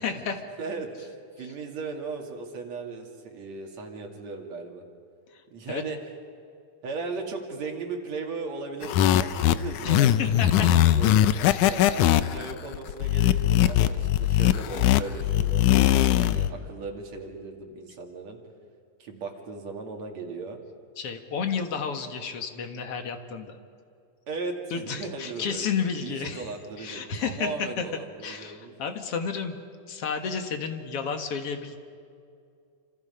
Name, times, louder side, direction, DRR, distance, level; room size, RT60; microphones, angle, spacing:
voice 1, 0.0-0.4 5.7-5.8 9.8-10.7 11.5-11.7 21.0-23.6 24.7-26.5 26.8-27.8 28.2-29.6 29.9-31.8, left 6 dB, 55° left, 6 dB, 2.3 m, -31 dB
voice 2, 0.6-4.8 5.5-6.0 6.8-10.3 10.9-11.2 11.6-18.4 19.0-20.6 24.3-25.7 26.0-28.7, right 4 dB, 60° right, 2 dB, 3.5 m, -37 dB
sound 1, 8.8-16.5, left 12 dB, 80° left, 2.2 m, -21 dB
28.0 x 26.5 x 5.7 m, 2.4 s
omnidirectional pair, 3.6 m